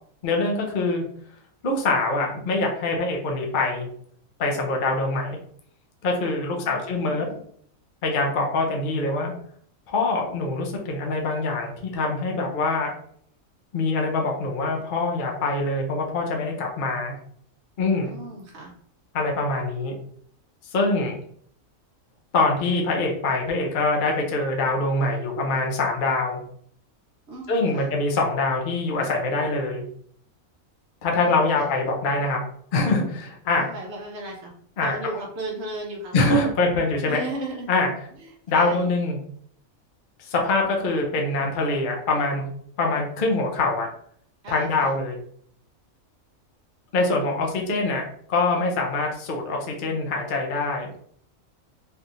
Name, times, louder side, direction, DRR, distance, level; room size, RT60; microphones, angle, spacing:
voice 1, 0.2-1.0 1.6-3.9 4.4-5.4 6.0-7.2 8.0-9.3 9.9-12.9 13.7-17.1 17.8-18.1 19.1-20.0 20.7-21.2 22.3-26.4 27.5-29.8 31.0-32.4 32.7-33.6 34.8-35.0 36.1-37.2 37.7-37.9 38.5-39.2 40.3-42.5 42.8-43.9 44.5-45.2 46.9-48.0 48.3-50.9, left 3 dB, 50° left, 1 dB, 0.6 m, -24 dB
voice 2, 6.5-7.4 18.0-18.7 27.3-27.9 31.1-31.7 33.6-34.5 34.8-36.1 37.1-37.7 38.2-38.9 44.4-45.0, right 2 dB, 60° right, -1 dB, 1.0 m, -35 dB
3.3 x 2.8 x 2.5 m, 0.62 s
omnidirectional pair, 1.4 m